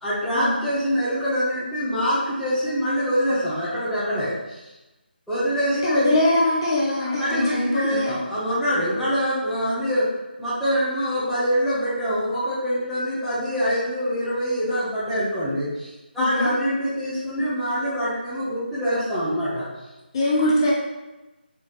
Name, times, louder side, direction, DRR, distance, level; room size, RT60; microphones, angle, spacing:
voice 1, 0.0-4.7 5.3-6.1 7.0-10.1 10.4-19.7, equal, ahead, -15 dB, 0.8 m, -25 dB
voice 2, 5.8-8.2 16.2-16.5 20.1-20.7, left 1 dB, 25° left, -5 dB, 0.9 m, -22 dB
4.5 x 4.4 x 2.5 m, 1.0 s
figure-of-eight pair, 160°, 6 cm